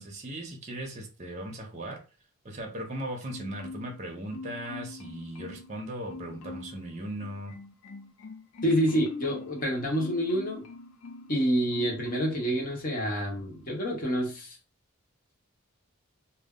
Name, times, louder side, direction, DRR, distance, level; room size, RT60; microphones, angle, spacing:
voice 1, 0.0-2.0 2.4-7.5, right 1 dB, 30° right, 1 dB, 0.6 m, -38 dB
Marimba xylophone, 3.3-4.0 4.3-5.7 6.1-6.8 7.2-11.4 11.7-12.4 12.8-13.0, left 3 dB, 80° left, 0.5 m, -43 dB
voice 2, 8.6-10.6 11.3-14.6, equal, 40° left, 0 dB, 0.8 m, -28 dB
2.2 x 2.0 x 3.6 m, 0.33 s
head